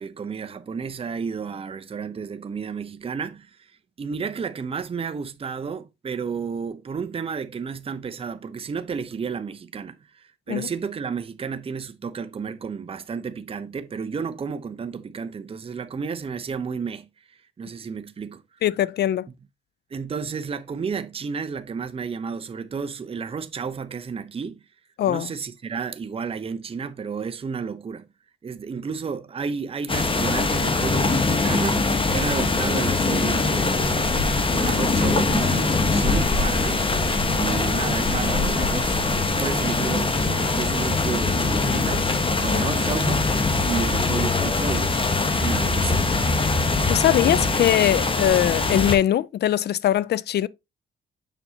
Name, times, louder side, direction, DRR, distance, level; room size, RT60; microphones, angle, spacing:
voice 1, 0.0-3.7 4.0-17.1 17.6-18.4 19.9-24.6 25.1-28.0 28.4-34.2 34.5-36.8 37.3-42.1 42.4-43.2 43.6-46.1, right 6 dB, 30° right, 0.7 m, -32 dB
voice 2, 18.6-19.3 25.0-25.3 42.5-42.6 46.9-50.5, left 12 dB, 55° left, 0.4 m, -21 dB
sound 1, 29.9-49.0, left 3 dB, 25° left, 1.2 m, -22 dB
7.1 x 5.5 x 2.8 m
cardioid pair, 90°, 20 cm